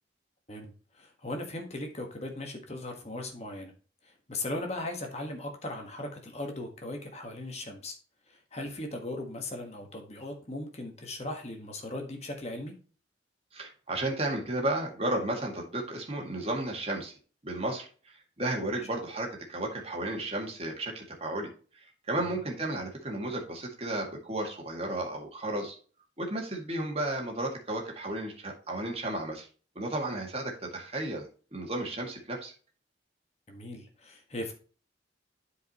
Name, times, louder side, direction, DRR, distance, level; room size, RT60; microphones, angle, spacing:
voice 1, 1.0-3.7 4.0-7.9 8.3-12.7 22.2-22.4 33.5-34.5, left 1 dB, 35° left, 3 dB, 1.5 m, -38 dB
voice 2, 13.5-17.1 17.4-25.8 26.2-29.5 29.8-32.5, right 1 dB, 35° right, 0 dB, 2.1 m, -33 dB
11.5 x 4.9 x 3.0 m, 0.39 s
head